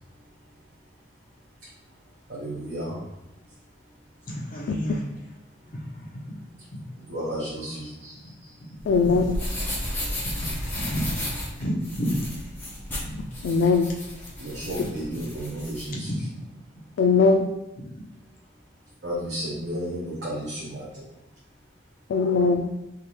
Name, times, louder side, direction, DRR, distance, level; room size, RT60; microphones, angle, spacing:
voice 1, 2.3-3.0 7.1-8.2 14.4-16.1 19.0-21.0, equal, 70° right, -8 dB, 1.0 m, -32 dB
voice 2, 4.3-5.0 5.7-6.2 6.7-6.8 7.2-7.3 9.0-9.1 10.2-10.5 10.7-11.0 11.6-12.2 13.0-13.2 14.5-15.1 15.9-16.2, equal, 50° left, -4 dB, 0.8 m, -31 dB
sound 1, 8.8-15.9, left 1 dB, 10° left, 0.9 m, -33 dB
voice 3, 8.9-9.4 13.4-13.9 17.0-17.5 22.1-22.7, left 4 dB, 90° left, 3 dB, 0.3 m, -20 dB
3.6 x 2.9 x 3.0 m, 0.91 s
head